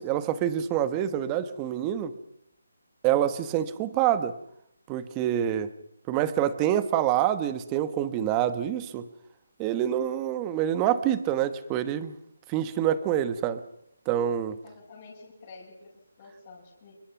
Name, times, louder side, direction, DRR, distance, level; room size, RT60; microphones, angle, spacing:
voice 1, 0.0-2.1 3.0-4.3 4.9-5.7 6.1-9.0 9.6-12.2 12.5-13.6 14.1-14.6, right 11 dB, 15° right, 13 dB, 1.2 m, -26 dB
voice 2, 14.5-15.9 16.2-16.9, left 3 dB, 25° left, -2 dB, 7.9 m, -49 dB
28.5 x 23.5 x 5.9 m, 0.76 s
hypercardioid pair, 170°, 0 cm